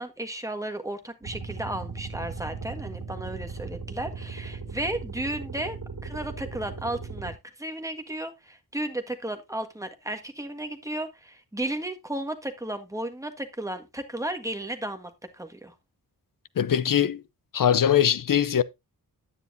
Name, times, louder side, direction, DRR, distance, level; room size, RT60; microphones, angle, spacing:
voice 1, 0.0-15.7, right 1 dB, 10° right, 1.6 m, -34 dB
sound 1, 1.2-7.3, right 4 dB, 55° right, 2.3 m, -37 dB
voice 2, 16.6-17.2 17.5-18.6, left 9 dB, 60° left, 0.7 m, -21 dB
9.7 x 9.7 x 2.6 m
wide cardioid pair, 110°, 37 cm